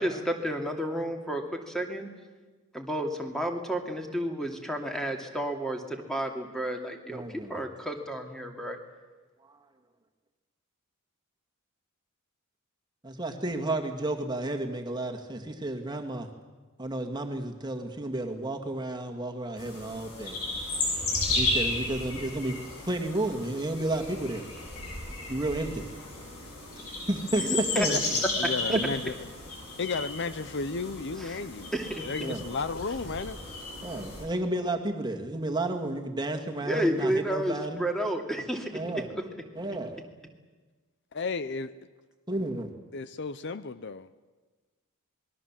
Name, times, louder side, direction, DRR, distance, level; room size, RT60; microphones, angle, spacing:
voice 1, 0.0-2.1 2.7-8.8 27.4-27.9 28.4-28.5 31.2-31.4 31.7-32.3 36.6-38.7 39.1-39.2, right 1 dB, ahead, 2.5 m, -31 dB
voice 2, 7.1-7.7 9.4-9.6 13.0-16.3 16.8-20.4 21.3-22.6 22.9-24.4 25.3-25.9 27.1-27.4 27.8-28.0 28.7-28.8 32.2-32.4 33.8-37.9 38.7-39.1 39.6-40.0 42.3-42.7, right 2 dB, 20° right, 2.1 m, -32 dB
sound 1, 19.6-34.2, left 2 dB, 80° left, 7.5 m, -34 dB
voice 3, 27.9-29.1 29.8-31.7 32.0-33.4 41.1-41.7 42.9-44.1, left 4 dB, 50° left, 0.7 m, -33 dB
27.0 x 21.0 x 7.5 m
head